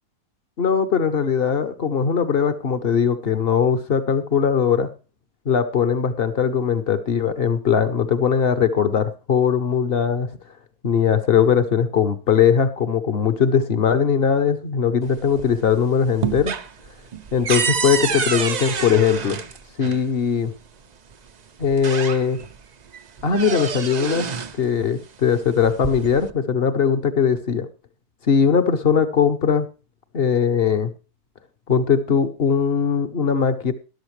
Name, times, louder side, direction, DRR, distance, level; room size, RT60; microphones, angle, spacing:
voice 1, 0.6-4.9 5.5-10.3 10.8-16.5 17.3-19.4 19.8-20.5 21.6-22.4 23.2-24.3 24.6-27.7 28.3-29.7 30.1-30.9 31.7-33.7, left 7 dB, 45° left, 11 dB, 1.0 m, -20 dB
sound 1, 15.1-15.7 16.0-20.0 21.1-21.2 21.6-22.6 22.9-24.6 25.5-26.3, right 6 dB, 55° right, 0.4 m, -27 dB
13.0 x 11.5 x 3.2 m, 0.33 s
omnidirectional pair, 1.6 m